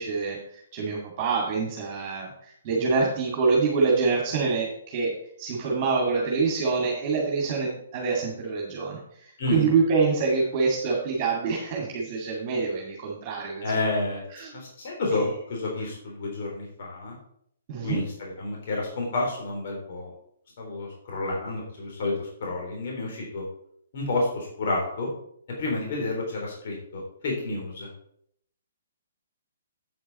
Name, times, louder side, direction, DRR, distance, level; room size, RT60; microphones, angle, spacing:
voice 1, 0.0-13.9 14.3-14.6 15.1-15.3 17.7-18.0, right 4 dB, 35° right, -1 dB, 2.3 m, -26 dB
voice 2, 13.6-14.2 14.5-17.2 17.8-20.1 20.6-23.4 23.9-25.1 25.6-27.9, left 2 dB, 50° left, -1 dB, 3.5 m, -30 dB
8.7 x 8.5 x 4.3 m, 0.69 s
figure-of-eight pair, 125°, 0 cm